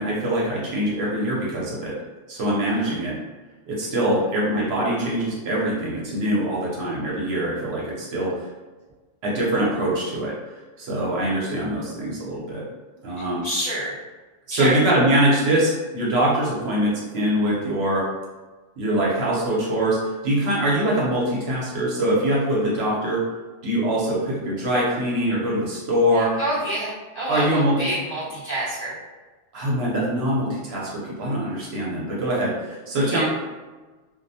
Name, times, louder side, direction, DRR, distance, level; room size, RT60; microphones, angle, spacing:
voice 1, 0.0-2.0 2.3-3.2 3.7-8.4 9.2-10.4 10.8-12.7 13.0-13.5 14.5-18.1 18.8-23.2 23.6-26.4 27.3-27.9 29.5-33.2, right 1 dB, 65° right, -5 dB, 0.8 m, -23 dB
voice 2, 13.4-13.9 14.5-14.8 26.1-28.9 33.0-33.2, right 1 dB, 40° left, -10 dB, 0.8 m, -27 dB
2.3 x 2.0 x 2.6 m, 1.3 s
omnidirectional pair, 1.3 m